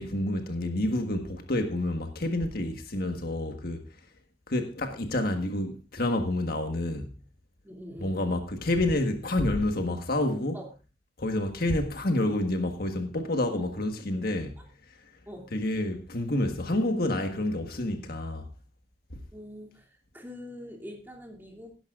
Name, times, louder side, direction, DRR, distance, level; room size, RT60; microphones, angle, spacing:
voice 1, 0.0-3.9 4.5-7.1 8.0-10.6 11.2-14.6 15.5-18.5 19.1-19.2, left 1 dB, 55° left, 1.5 m, -28 dB
voice 2, 7.6-8.2 10.5-10.7 13.6-13.7 15.3-15.5 19.3-21.8, equal, 10° right, 2.7 m, -44 dB
17.5 x 11.0 x 2.5 m
head